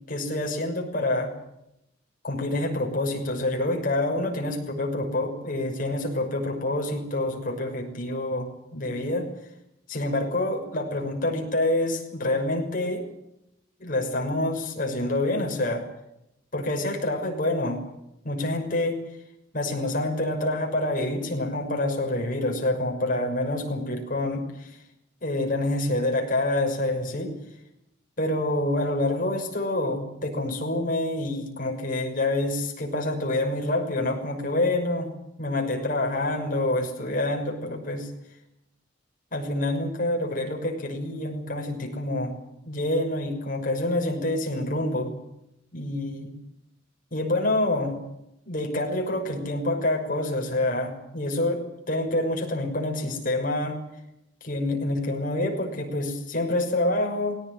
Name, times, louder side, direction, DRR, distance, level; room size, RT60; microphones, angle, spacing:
voice 1, 0.1-1.3 2.2-9.3 9.9-13.0 13.8-15.9 16.5-17.8 18.2-19.0 19.5-24.8 25.2-27.3 28.2-35.1 35.4-38.1 39.3-42.4 42.7-45.1 45.7-46.3 47.1-48.0 48.5-53.8 54.4-57.4, left 1 dB, 45° left, 1 dB, 6.2 m, -27 dB
19.5 x 18.0 x 9.9 m, 0.84 s
head